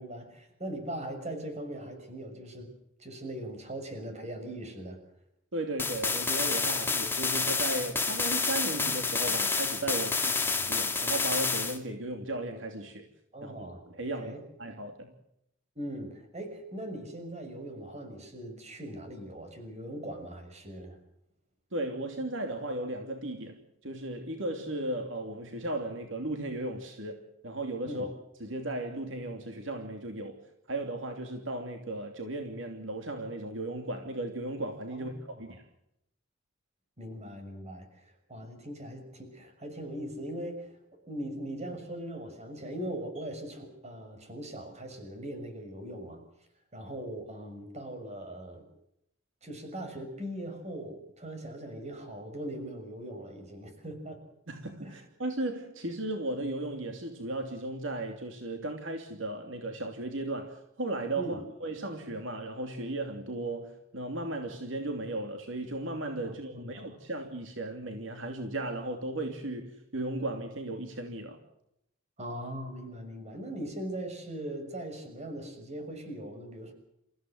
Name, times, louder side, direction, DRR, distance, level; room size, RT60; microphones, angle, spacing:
voice 1, 0.0-2.7 3.0-5.0 6.8-6.9 10.4-10.8 13.3-13.8 14.2-14.4 15.7-21.0 27.8-28.1 34.9-35.4 37.0-40.7 41.1-46.2 46.7-48.6 49.4-54.2 54.8-55.0 61.2-61.4 66.2-66.9 72.2-76.7, right 1 dB, 35° right, 6 dB, 6.3 m, -40 dB
voice 2, 5.5-13.1 13.4-13.5 13.9-14.3 14.6-15.1 21.7-28.1 28.4-30.4 30.7-35.6 54.5-71.4, right 2 dB, 75° right, 5 dB, 3.0 m, -36 dB
sound 1, 5.8-11.8, left 4 dB, 10° left, 2.7 m, -29 dB
28.5 x 15.5 x 7.9 m, 0.79 s
head